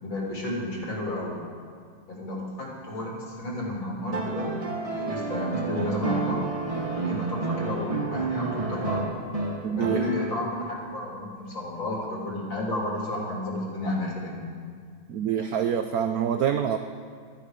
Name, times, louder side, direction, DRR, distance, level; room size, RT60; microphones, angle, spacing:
voice 1, 0.0-1.5 2.1-6.4 7.0-9.1 9.7-14.5, left 1 dB, 65° left, -3 dB, 3.7 m, -32 dB
sound 1, 4.1-10.6 12.0-12.1, right 3 dB, 25° right, 0.7 m, -30 dB
voice 2, 9.6-10.1 15.1-16.8, right 9 dB, 80° right, 8 dB, 0.8 m, -26 dB
13.0 x 13.0 x 5.1 m, 2.1 s
omnidirectional pair, 2.2 m